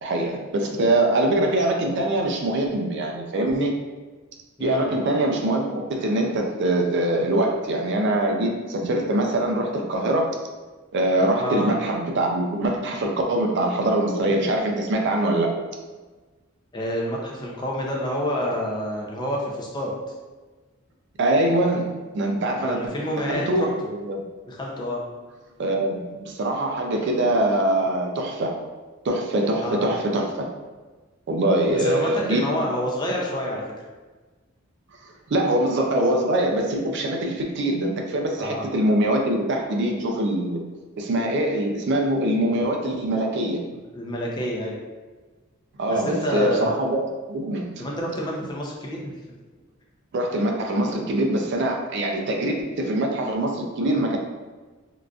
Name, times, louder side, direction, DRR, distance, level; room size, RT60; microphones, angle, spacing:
voice 1, 0.0-3.7 4.6-10.4 10.9-15.5 21.2-22.8 23.2-23.7 24.0-24.2 25.6-28.6 29.0-30.4 31.3-32.5 35.3-40.6 41.0-43.6 45.8-47.8 50.1-54.2, right 1 dB, 55° right, 1 dB, 0.4 m, -23 dB
voice 2, 4.6-4.9 11.4-11.7 16.7-19.9 22.6-23.7 24.5-25.0 29.6-29.8 31.7-33.6 38.4-38.7 43.9-44.7 45.9-46.7 47.8-49.0, equal, 20° left, -2 dB, 0.5 m, -28 dB
3.8 x 2.4 x 2.3 m, 1.3 s
head